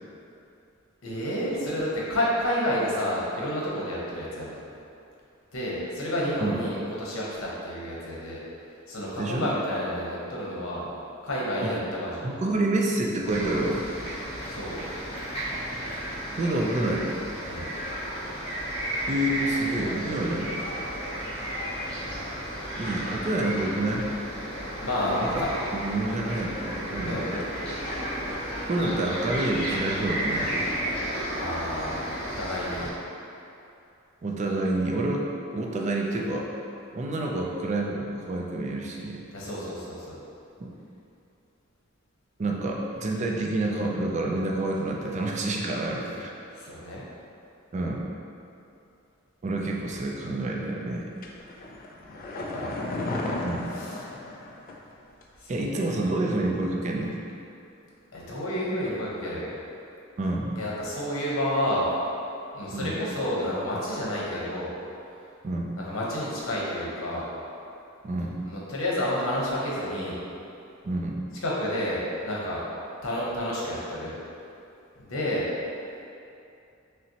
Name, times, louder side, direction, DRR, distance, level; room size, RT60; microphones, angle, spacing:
voice 1, 1.0-4.6 5.5-8.4 8.9-10.9 11.2-12.4 14.5-14.8 17.5-17.7 24.8-25.5 27.0-27.2 31.3-32.9 39.3-40.2 46.5-47.0 52.3-52.8 53.7-54.0 55.4-55.6 55.9-56.1 58.1-59.5 60.6-61.8 62.5-64.7 65.8-67.2 68.4-70.2 71.4-72.6 73.0-74.2 75.0-75.4, left 1 dB, 90° left, -5 dB, 0.9 m, -30 dB
voice 2, 9.2-9.5 11.6-11.7 12.2-13.8 16.3-17.2 19.1-20.6 22.8-24.1 25.2-25.3 25.7-27.4 28.3-30.5 34.2-35.3 35.5-36.5 36.9-39.2 40.6-40.7 42.4-46.3 47.7-48.0 49.4-51.1 53.4-53.7 55.5-57.2 60.2-60.6 62.7-63.0 65.4-65.7 68.0-68.4 70.8-71.2, right 2 dB, 35° right, -1 dB, 0.4 m, -28 dB
sound 1, 13.2-32.9, right 1 dB, 30° left, 0.8 m, -33 dB
sound 2, 51.2-54.9 55.2-55.3, left 2 dB, 45° left, 0.4 m, -34 dB
5.4 x 2.1 x 2.8 m, 2.7 s
head